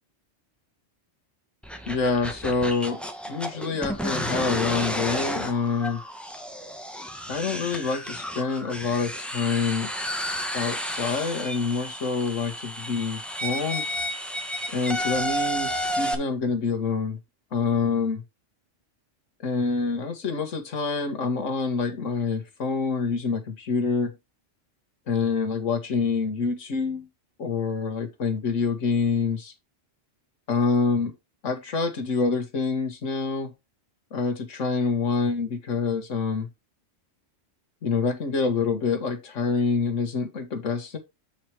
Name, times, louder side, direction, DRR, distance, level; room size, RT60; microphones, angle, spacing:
sound 1, 1.6-16.1, equal, ahead, 1.1 m, -32 dB
voice 1, 1.9-3.0 3.3-6.0 7.3-9.9 10.5-13.9 14.7-17.2 17.5-18.2 19.4-24.1 25.1-27.1 27.4-29.5 30.5-31.1 31.4-33.5 34.1-36.5 37.8-41.0, left 4 dB, 80° left, 1.7 m, -26 dB
7.9 x 4.6 x 4.6 m
omnidirectional pair, 1.3 m